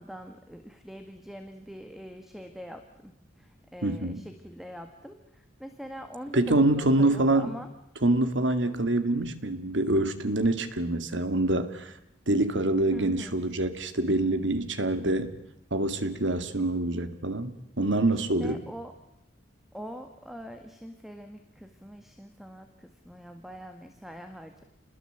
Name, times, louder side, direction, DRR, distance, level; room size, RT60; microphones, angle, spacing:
voice 1, 0.0-7.7 12.9-13.4 18.1-18.9 19.7-24.6, equal, ahead, 6 dB, 1.8 m, -43 dB
voice 2, 3.8-4.2 6.3-7.5 8.0-11.9 12.3-15.4 15.7-18.6, right 2 dB, 90° right, 10 dB, 2.2 m, -26 dB
29.0 x 20.5 x 8.1 m, 0.81 s
head